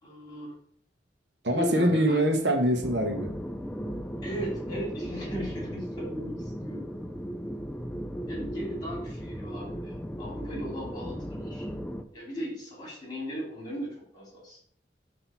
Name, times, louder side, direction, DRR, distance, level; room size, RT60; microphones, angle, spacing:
voice 1, 0.0-0.6 1.5-2.2 4.2-6.9 7.9-11.7 12.1-14.6, equal, 25° left, -4 dB, 2.5 m, -37 dB
voice 2, 1.4-3.3, right 1 dB, 75° right, 4 dB, 0.9 m, -24 dB
sound 1, 2.8-12.0, equal, 5° left, 0.3 m, -36 dB
6.0 x 2.8 x 5.5 m, 0.64 s
head